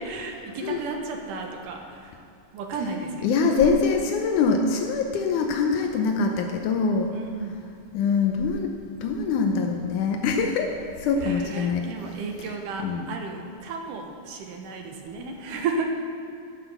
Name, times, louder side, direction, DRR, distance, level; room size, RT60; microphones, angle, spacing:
voice 1, 0.0-2.2 2.5-3.3 7.1-7.6 11.2-15.8, right 4 dB, 70° right, 3 dB, 2.2 m, -33 dB
voice 2, 3.2-7.1 7.9-8.7 9.0-10.7 11.0-11.8 12.8-13.1, left 5 dB, 85° left, 3 dB, 1.7 m, -23 dB
12.5 x 5.8 x 6.9 m, 2.6 s
omnidirectional pair, 4.4 m